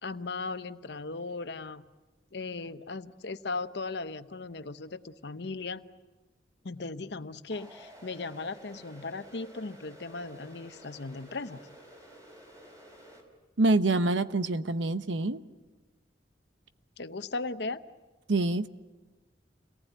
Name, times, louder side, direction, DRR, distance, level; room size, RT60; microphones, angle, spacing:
voice 1, 0.0-1.9 2.3-5.8 6.6-11.6 17.0-17.8, left 3 dB, 65° left, 11 dB, 0.9 m, -37 dB
sound 1, 7.5-13.2, right 1 dB, 20° right, 4.7 m, -52 dB
voice 2, 13.6-15.4 18.3-18.7, right 2 dB, 90° right, 12 dB, 1.0 m, -26 dB
28.5 x 19.0 x 9.2 m, 1.2 s
head